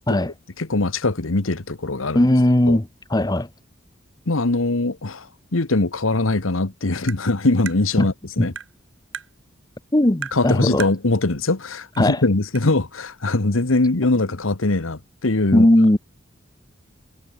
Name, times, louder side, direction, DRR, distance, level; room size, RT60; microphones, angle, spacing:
voice 1, 0.6-2.3 2.7-2.8 4.3-5.3 5.5-8.5 10.3-15.7, left 2 dB, 90° left, 1.4 m, -22 dB
voice 2, 2.1-3.5 8.0-8.1 8.4-8.5 9.9-10.9 12.0-12.2 15.5-16.0, left 1 dB, 20° left, 1.0 m, -18 dB
Tap, 7.1-7.2 7.7-7.8 8.6-8.7 9.1-9.3 10.2-10.4 10.8-11.0 12.0-12.1 12.6-12.7, right 7 dB, 65° right, 2.4 m, -33 dB
head